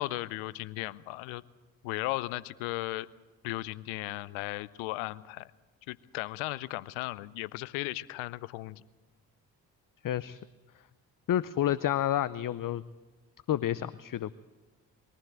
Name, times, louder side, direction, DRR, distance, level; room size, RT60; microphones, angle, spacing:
voice 1, 0.0-1.4 1.8-3.1 3.4-5.5 5.9-8.8, left 19 dB, 80° left, 20 dB, 0.6 m, -36 dB
voice 2, 10.0-10.4 11.3-12.8 13.5-14.3, left 11 dB, 45° left, 18 dB, 0.6 m, -29 dB
22.0 x 14.5 x 8.0 m, 1.3 s
hypercardioid pair, 40°, 48 cm